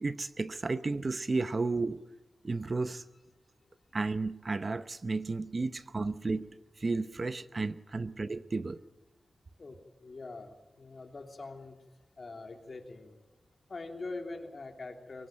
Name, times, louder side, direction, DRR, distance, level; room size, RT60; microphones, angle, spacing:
voice 1, 0.0-2.0 2.4-3.0 3.9-6.5 6.8-8.8, right 3 dB, 35° right, 12 dB, 0.7 m, -33 dB
voice 2, 10.0-11.7 12.2-13.2 13.7-15.3, left 3 dB, 45° left, 4 dB, 3.1 m, -43 dB
23.0 x 17.5 x 9.2 m, 1.1 s
wide cardioid pair, 110°, 0 cm